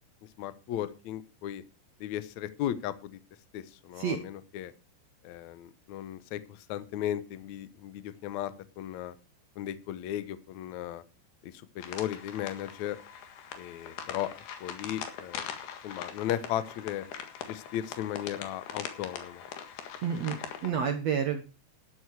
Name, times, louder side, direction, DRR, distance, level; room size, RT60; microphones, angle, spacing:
voice 1, 0.4-1.6 2.0-3.2 3.5-4.7 5.2-9.1 9.5-11.0 11.4-13.0 13.6-14.3 14.6-15.5 15.8-17.1 17.4-19.4, left 12 dB, 90° left, 14 dB, 1.6 m, -36 dB
sound 1, 11.8-20.7, left 8 dB, 70° left, 3.6 m, -42 dB
voice 2, 20.0-21.4, right 7 dB, 75° right, 7 dB, 1.5 m, -30 dB
12.5 x 11.5 x 4.8 m, 0.31 s
omnidirectional pair, 4.9 m